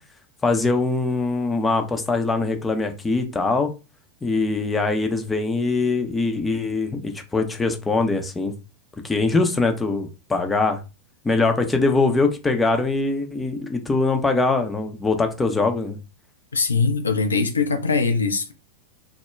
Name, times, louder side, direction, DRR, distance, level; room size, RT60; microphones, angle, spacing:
voice 1, 0.4-3.7 4.2-8.5 9.0-10.8 11.2-16.0, left 3 dB, 10° left, 0.5 m, -22 dB
voice 2, 16.5-18.5, left 4 dB, 75° left, 0.4 m, -21 dB
2.2 x 2.1 x 3.1 m
figure-of-eight pair, 90°, 0 cm